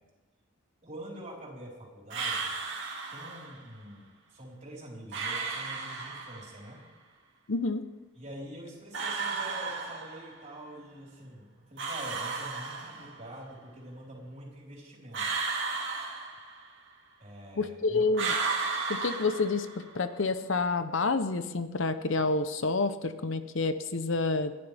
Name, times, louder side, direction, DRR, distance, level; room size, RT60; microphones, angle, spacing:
voice 1, 0.8-2.6 3.1-6.8 8.2-15.3 17.2-18.1, right 1 dB, 35° right, -3 dB, 4.4 m, -45 dB
sound 1, 2.1-3.6 5.1-6.6 8.9-10.5 11.8-13.3 15.1-16.9 18.1-20.0, right 4 dB, 60° right, 2.4 m, -34 dB
voice 2, 7.5-7.8 17.6-18.3 18.9-24.5, left 3 dB, 65° left, 11 dB, 0.8 m, -28 dB
29.5 x 11.0 x 3.5 m, 1.2 s
head